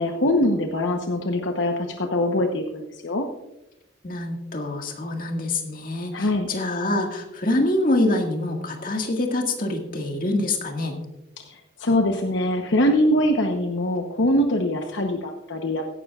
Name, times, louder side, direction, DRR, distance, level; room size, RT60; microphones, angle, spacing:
voice 1, 0.0-3.2 6.1-6.5 11.5-15.9, left 1 dB, 75° left, 4 dB, 1.0 m, -23 dB
voice 2, 4.0-11.0, left 2 dB, 45° left, 2 dB, 1.9 m, -25 dB
16.0 x 12.0 x 2.4 m, 0.91 s
head